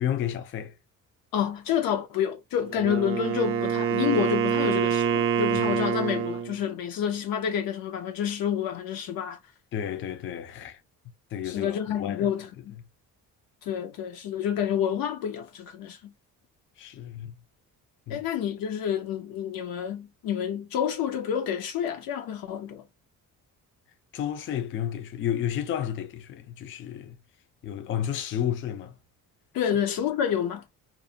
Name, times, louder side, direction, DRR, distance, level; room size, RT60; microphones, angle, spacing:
voice 1, 0.0-0.8 9.7-10.8 11.3-12.3 16.8-17.3 18.1-18.2 24.1-27.2 27.6-29.0, left 10 dB, 35° left, 0.4 m, -31 dB
voice 2, 1.3-9.4 11.5-12.7 13.6-16.1 18.1-22.8 29.5-30.6, left 9 dB, 80° left, 0.8 m, -29 dB
Wind instrument woodwind instrument, 2.7-6.6, right 8 dB, 40° right, 0.4 m, -26 dB
2.5 x 2.1 x 2.6 m
cardioid pair, 145°, 34 cm